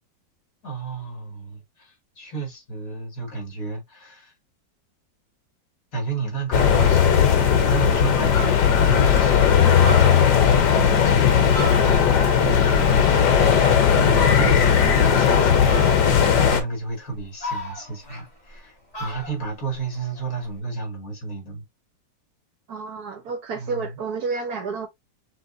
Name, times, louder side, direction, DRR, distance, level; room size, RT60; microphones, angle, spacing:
voice 1, 0.6-4.3 5.9-21.6 23.5-23.9, right 3 dB, 50° left, 2.6 m, -31 dB
Fowl, 6.1-6.2 6.6-7.2 7.6-7.7 8.0-8.1 8.3-9.2 9.6-12.3 12.6-13.7 14.1-14.8 15.7-16.3 16.9-18.6 18.9-20.5, equal, 20° left, 1.8 m, -36 dB
sound 1, 6.5-16.6, left 8 dB, 70° left, 1.6 m, -17 dB
voice 2, 22.7-24.9, right 4 dB, 60° right, 1.4 m, -30 dB
5.9 x 2.8 x 2.6 m
omnidirectional pair, 2.0 m